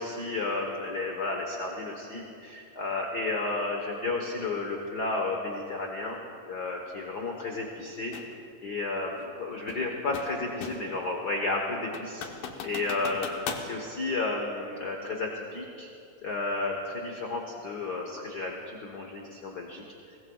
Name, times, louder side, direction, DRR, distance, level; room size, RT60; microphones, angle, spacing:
voice 1, 0.0-6.2 6.5-8.1 8.6-12.3 12.6-15.9 16.2-19.8, left 3 dB, 60° left, 0 dB, 1.0 m, -32 dB
sound 1, 8.1-8.3 9.7-11.0 11.4-11.5 11.9-13.7, left 6 dB, 90° left, 2.6 m, -38 dB
22.5 x 18.5 x 2.4 m, 2.6 s
omnidirectional pair, 3.4 m